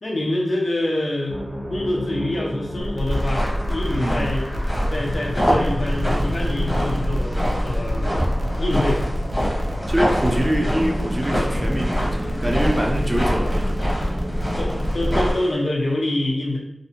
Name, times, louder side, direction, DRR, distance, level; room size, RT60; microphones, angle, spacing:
voice 1, 0.0-1.4 1.7-4.5 4.9-8.2 8.6-9.1 14.6-16.6, left 1 dB, 65° left, -2 dB, 0.6 m, -26 dB
sound 1, 1.3-15.3, equal, 20° left, 0.7 m, -32 dB
sound 2, 2.8-15.3, equal, 85° right, 0.4 m, -26 dB
sound 3, 3.1-15.5, equal, 40° left, 1.0 m, -27 dB
voice 2, 9.9-13.8, right 1 dB, 25° right, 0 dB, 0.4 m, -24 dB
2.5 x 2.1 x 2.7 m, 0.79 s
wide cardioid pair, 65°, 0 cm